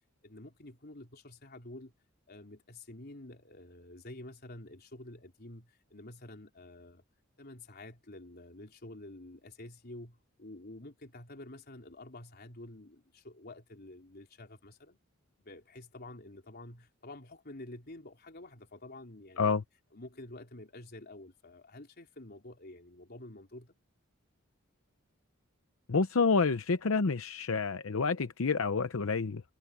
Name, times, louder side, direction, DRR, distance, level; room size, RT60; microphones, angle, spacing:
voice 1, 0.2-1.9 2.3-7.0 7.4-15.0 15.4-19.5 19.9-23.8, left 1 dB, 50° left, 4.0 m, -49 dB
voice 2, 25.9-29.4, left 4 dB, 80° left, 0.7 m, -28 dB
head